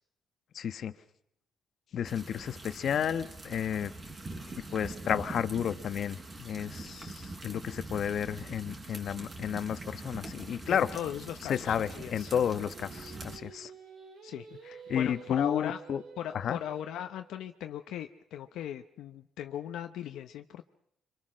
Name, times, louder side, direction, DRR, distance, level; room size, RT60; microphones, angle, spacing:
voice 1, 0.5-0.9 1.9-3.9 4.4-11.0 11.4-13.7 14.7-16.0 16.3-16.6, left 8 dB, 60° left, 12 dB, 1.1 m, -32 dB
sound 1, 2.0-13.4, right 2 dB, 35° right, 4.0 m, -44 dB
voice 2, 10.7-12.3 14.2-14.5 14.9-15.8 16.2-20.6, left 11 dB, 85° left, 7 dB, 0.8 m, -38 dB
Singing, 12.2-17.4, right 6 dB, 80° right, 5.7 m, -50 dB
26.0 x 24.5 x 6.4 m, 0.75 s
cardioid pair, 90°, 0 cm